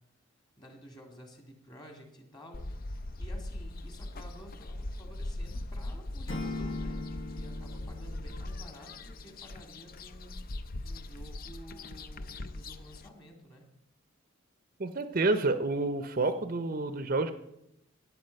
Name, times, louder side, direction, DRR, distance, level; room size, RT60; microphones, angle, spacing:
voice 1, 0.6-10.4 10.8-13.7, equal, 20° left, 3 dB, 2.2 m, -52 dB
sound 1, 2.5-13.1, left 1 dB, 45° left, 0.5 m, -40 dB
Acoustic guitar / Strum, 6.3-9.3, left 2 dB, 60° left, 1.4 m, -40 dB
voice 2, 14.8-17.3, right 3 dB, 40° right, 10 dB, 0.6 m, -29 dB
13.0 x 9.5 x 5.3 m, 0.83 s
head